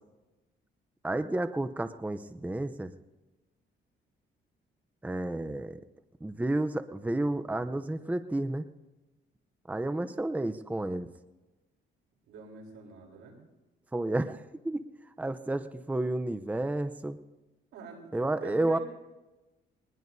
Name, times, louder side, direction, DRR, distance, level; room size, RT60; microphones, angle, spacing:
voice 1, 1.0-2.9 5.0-5.8 6.2-8.6 9.7-11.1 13.9-14.8 15.2-17.2 18.1-18.8, right 2 dB, 10° right, 11 dB, 0.7 m, -31 dB
voice 2, 12.3-13.4 17.7-18.8, right 5 dB, 90° right, 0 dB, 3.8 m, -46 dB
21.5 x 20.0 x 2.7 m, 1.1 s
cardioid pair, 90°, 20 cm